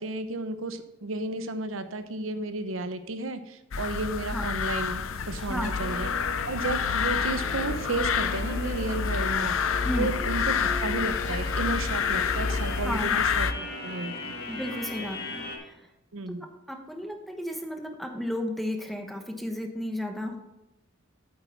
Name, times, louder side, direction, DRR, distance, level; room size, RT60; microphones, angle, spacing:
voice 1, 0.0-6.1 6.5-14.3 16.1-16.4, right 2 dB, 70° right, 10 dB, 0.8 m, -33 dB
sound 1, 3.7-13.5, left 6 dB, 75° left, 0.6 m, -28 dB
voice 2, 5.4-5.8 9.8-10.1 12.8-13.2 14.5-15.8 16.7-20.4, left 1 dB, ahead, 4 dB, 1.1 m, -33 dB
sound 2, 5.7-15.6, left 3 dB, 50° left, 1.8 m, -37 dB
8.9 x 7.9 x 4.1 m, 0.94 s
head